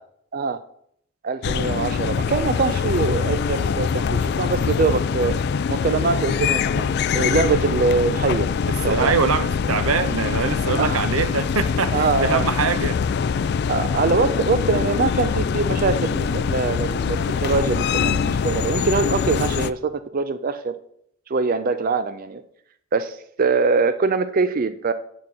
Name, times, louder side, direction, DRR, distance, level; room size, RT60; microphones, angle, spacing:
voice 1, 1.2-5.4 5.7-8.5 8.8-9.1 10.8-11.0 11.9-12.4 13.7-20.7 21.3-22.4 22.9-24.9, right 4 dB, 40° right, 0.4 m, -23 dB
sound 1, 1.4-19.7, left 6 dB, 50° left, 0.3 m, -23 dB
voice 2, 8.9-13.0, right 5 dB, 85° right, 0.7 m, -23 dB
8.9 x 4.1 x 7.2 m
head